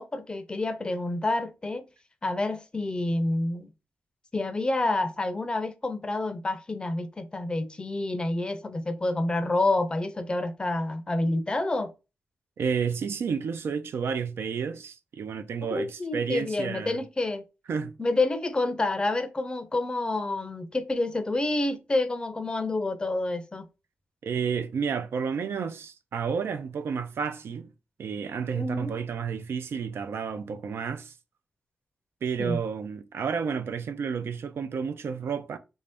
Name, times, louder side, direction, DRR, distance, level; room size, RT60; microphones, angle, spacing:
voice 1, 0.0-1.9 2.2-3.7 4.3-11.9 15.7-17.4 18.0-23.7 28.5-29.0 32.4-32.6, left 2 dB, 20° left, 0.5 m, -28 dB
voice 2, 12.6-17.0 17.7-17.9 24.2-27.7 28.0-31.2 32.2-35.6, right 6 dB, 75° right, 0.4 m, -31 dB
3.4 x 2.7 x 3.4 m
wide cardioid pair, 135°, 4 cm